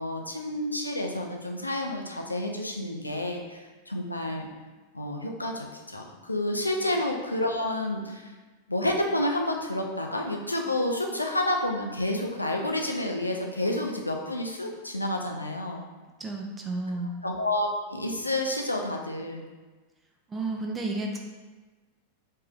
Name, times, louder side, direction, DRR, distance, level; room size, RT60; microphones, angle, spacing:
voice 1, 0.0-4.5 4.9-8.3 8.7-15.9 17.2-19.4, left 1 dB, 85° left, 2 dB, 0.3 m, -29 dB
voice 2, 16.2-17.1 20.3-21.2, right 2 dB, 15° right, 1 dB, 0.5 m, -32 dB
3.5 x 3.1 x 2.4 m, 1.3 s
figure-of-eight pair, 90°, 0 cm